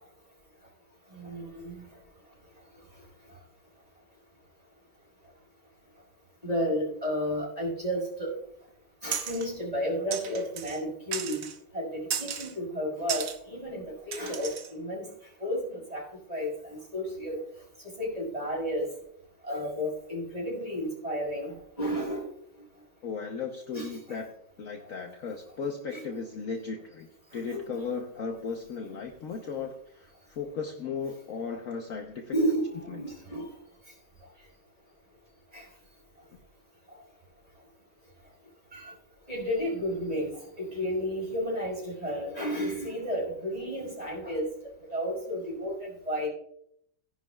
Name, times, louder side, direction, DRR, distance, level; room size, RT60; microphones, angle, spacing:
voice 1, 1.1-1.9 6.4-8.3 9.0-11.4 11.7-15.1 15.4-16.0 16.3-17.4 18.0-18.9 19.4-22.3 23.7-24.2 25.9-26.0 27.3-27.8 32.3-33.5 35.5-35.7 38.7-38.9 39.3-46.3, equal, 20° right, -3 dB, 5.2 m, -32 dB
sound 1, 9.1-9.5 10.1-10.8 11.1-11.6 12.1-12.5 13.1-13.4 14.1-14.7, right 8 dB, 75° right, 1.5 m, -34 dB
voice 2, 23.0-27.1 27.3-32.3 32.9-33.0, left 5 dB, 55° left, 3 dB, 1.1 m, -36 dB
17.0 x 10.5 x 2.3 m, 0.74 s
omnidirectional pair, 1.9 m